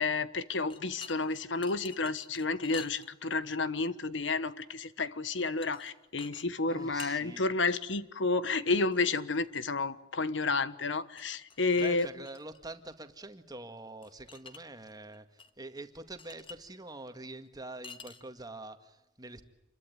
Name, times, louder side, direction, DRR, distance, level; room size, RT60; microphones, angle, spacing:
voice 1, 0.0-12.1, left 3 dB, 75° left, 1.3 m, -31 dB
sound 1, 0.7-3.6 5.4-5.9 6.2-6.5 6.7-7.2 8.9-9.7 11.1-12.6 14.0-14.6 14.9-15.5 15.8-15.9 16.2-16.6 17.8-18.4, left 5 dB, 30° left, 1.6 m, -49 dB
voice 2, 6.7-7.5 11.8-19.4, right 2 dB, 20° right, 2.0 m, -45 dB
28.0 x 22.5 x 9.3 m
head